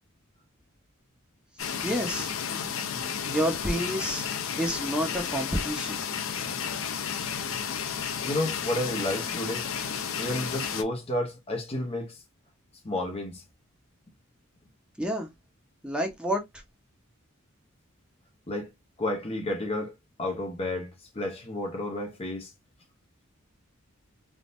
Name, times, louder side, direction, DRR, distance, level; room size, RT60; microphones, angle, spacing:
sound 1, 1.6-10.8, left 7 dB, 70° left, 0.6 m, -32 dB
voice 1, 1.8-2.3 3.3-4.3 4.6-6.0 15.0-15.3 15.8-16.4, equal, 5° right, 0.9 m, -29 dB
voice 2, 8.2-9.7 10.2-12.2 12.8-13.4 18.5-18.7 19.0-22.5, left 1 dB, 30° left, 0.8 m, -31 dB
3.5 x 2.7 x 2.6 m
head